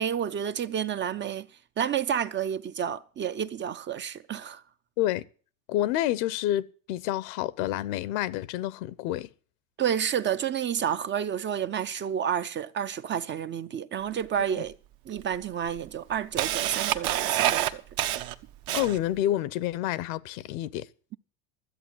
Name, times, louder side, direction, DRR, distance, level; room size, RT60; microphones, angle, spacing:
voice 1, 0.0-1.5 1.8-4.6 9.8-14.8 15.1-17.8, right 9 dB, 25° right, 0.6 m, -30 dB
voice 2, 5.0-5.3 5.7-9.3 14.5-14.6 18.7-20.9, left 13 dB, 70° left, 0.9 m, -28 dB
Camera, 14.2-14.3 15.2-15.3 15.7-19.2, right 13 dB, 55° right, 1.1 m, -27 dB
13.0 x 8.0 x 7.8 m
supercardioid pair, 110°, 42 cm